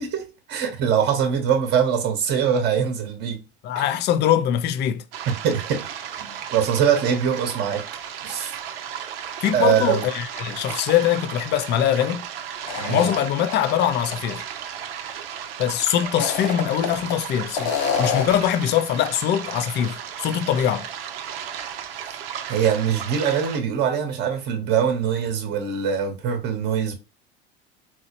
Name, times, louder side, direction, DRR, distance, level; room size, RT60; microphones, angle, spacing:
voice 1, 0.0-3.4 3.7-3.9 5.3-5.9 6.2-7.8 8.2-8.6 9.5-10.1 12.8-13.1 22.1-22.2 22.5-26.9, right 8 dB, 35° right, 0.8 m, -23 dB
voice 2, 3.6-5.0 9.4-12.3 12.9-14.5 15.6-20.9, left 10 dB, 35° left, 0.4 m, -22 dB
sound 1, 5.1-23.6, right 9 dB, 85° right, 0.6 m, -35 dB
sound 2, 12.7-13.7 14.1-14.2 16.0-17.2 17.5-18.5, left 6 dB, 80° left, 0.8 m, -26 dB
4.2 x 2.0 x 2.8 m
supercardioid pair, 100°, 29 cm